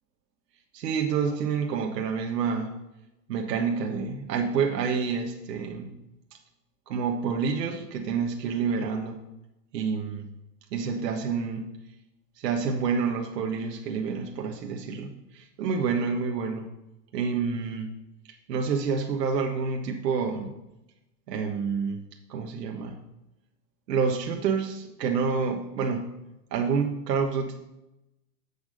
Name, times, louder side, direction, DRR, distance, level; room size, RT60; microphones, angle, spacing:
voice 1, 0.7-2.7 3.3-5.9 6.9-9.2 9.7-10.2 10.7-11.6 12.4-16.7 17.1-17.9 18.5-20.5 21.3-23.0 23.9-26.1 26.5-27.6, right 5 dB, 75° right, 3 dB, 1.4 m, -28 dB
8.2 x 7.2 x 6.7 m, 0.94 s
hypercardioid pair, 120°, 49 cm